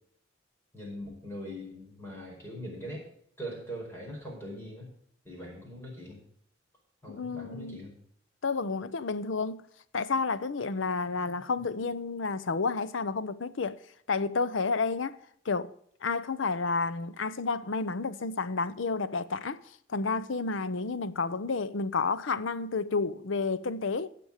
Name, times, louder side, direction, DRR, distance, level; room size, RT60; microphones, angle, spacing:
voice 1, 0.7-3.1 3.4-4.9 5.2-6.2 7.0-7.9, equal, 10° left, 5.0 m, -41 dB
voice 2, 7.1-7.8 8.4-9.7 9.9-13.8 14.1-15.2 15.5-15.7 16.0-19.6 19.9-24.1, left 4 dB, 85° left, 0.7 m, -30 dB
16.5 x 6.0 x 4.9 m
head